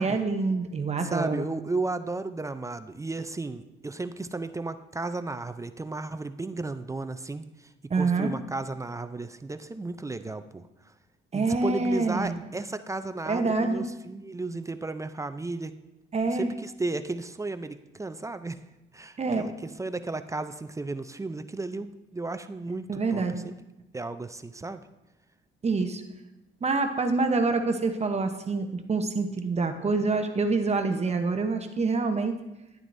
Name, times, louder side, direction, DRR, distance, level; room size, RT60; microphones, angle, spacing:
voice 1, 0.0-1.5 7.9-8.3 11.3-12.4 13.2-13.8 16.1-16.5 19.2-19.5 22.9-23.4 25.6-26.0 26.6-32.4, right 3 dB, 35° right, 6 dB, 0.8 m, -26 dB
voice 2, 1.0-7.4 7.9-10.7 11.3-15.7 16.3-18.6 18.9-19.5 19.8-23.6 23.9-24.8, right 3 dB, 15° right, 10 dB, 0.4 m, -34 dB
10.5 x 9.8 x 2.6 m, 0.95 s
cardioid pair, 90°, 20 cm